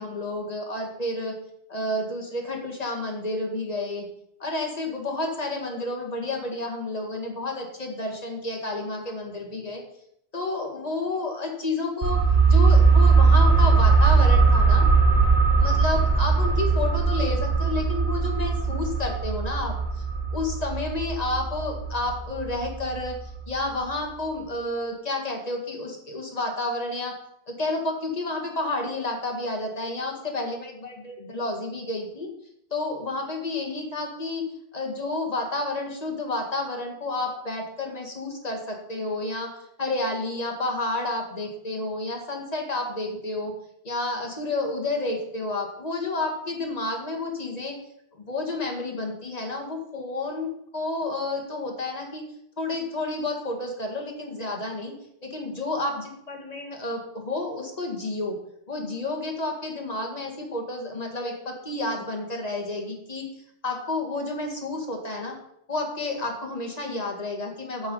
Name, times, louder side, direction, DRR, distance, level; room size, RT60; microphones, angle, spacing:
voice 1, 0.0-1.4 1.7-4.1 4.4-9.8 10.3-12.2 12.5-14.9 15.6-20.0 20.3-23.2 23.5-27.1 27.5-32.3 32.7-34.4 34.7-39.5 39.8-43.5 43.8-47.8 48.1-52.2 52.6-54.9 55.2-58.4 58.7-63.3 63.6-65.3 65.7-67.9, left 2 dB, 40° left, 2 dB, 1.9 m, -30 dB
sound 1, 12.0-23.4 23.7-23.8, right 4 dB, 45° right, 1.9 m, -20 dB
8.3 x 7.0 x 5.4 m, 0.74 s
omnidirectional pair, 1.1 m